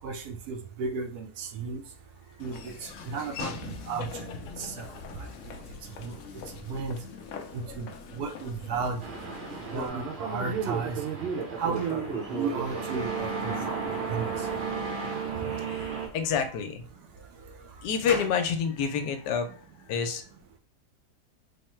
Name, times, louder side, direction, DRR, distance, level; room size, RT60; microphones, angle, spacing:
voice 1, 0.0-1.8 2.4-4.3 4.6-4.9 5.2-5.5 6.0-6.1 6.7-7.0 7.5-7.9 8.1-9.0 9.7-11.0 11.6-13.8 14.1-14.3 15.4-15.5, right 5 dB, 70° right, 4 dB, 1.1 m, -34 dB
Laughter / Walk footsteps, 2.4-9.9, left 5 dB, 70° left, 0.7 m, -42 dB
sound 1, 9.0-16.1, right 5 dB, 50° right, 0.9 m, -33 dB
sound 2, 11.1-13.0 13.4-14.2 15.2-16.6 17.2-18.5, left 1 dB, 20° left, 0.9 m, -45 dB
voice 2, 15.7-16.8 17.8-19.6 19.9-20.2, left 6 dB, 85° left, 7 dB, 1.2 m, -28 dB
3.5 x 2.1 x 4.3 m, 0.41 s
omnidirectional pair, 1.8 m